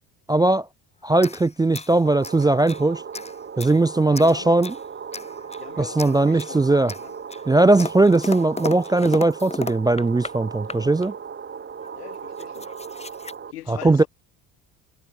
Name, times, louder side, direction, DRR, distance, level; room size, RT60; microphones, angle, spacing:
voice 1, 0.3-0.7 1.0-3.0 3.6-4.7 5.8-6.9 7.5-11.1 13.7-14.0, right 2 dB, 10° right, 0.4 m, -19 dB
sound 1, 1.2-2.8 3.1-3.8 4.1-4.8 5.1-5.7 6.0-6.6 6.9-10.4 10.7-11.1 11.8-11.9 12.1-13.3, left 3 dB, 15° left, 1.3 m, -35 dB
sound 2, 2.0-13.5, right 6 dB, 25° right, 1.1 m, -37 dB
voice 2, 4.0-4.6 5.6-7.1 11.9-12.7 13.5-14.1, left 14 dB, 90° left, 7.4 m, -41 dB
hypercardioid pair, 60°, 45 cm